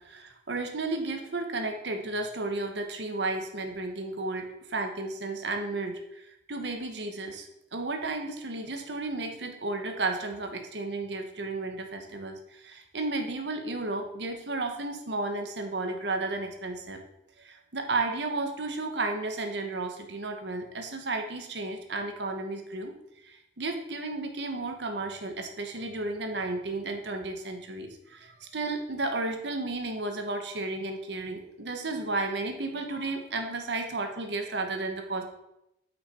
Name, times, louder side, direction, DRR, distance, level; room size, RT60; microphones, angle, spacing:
voice 1, 0.1-6.0 6.5-7.5 7.7-12.4 12.6-17.0 17.4-22.9 23.6-35.2, right 2 dB, 80° right, 5 dB, 1.1 m, -33 dB
9.0 x 5.8 x 4.3 m, 0.83 s
head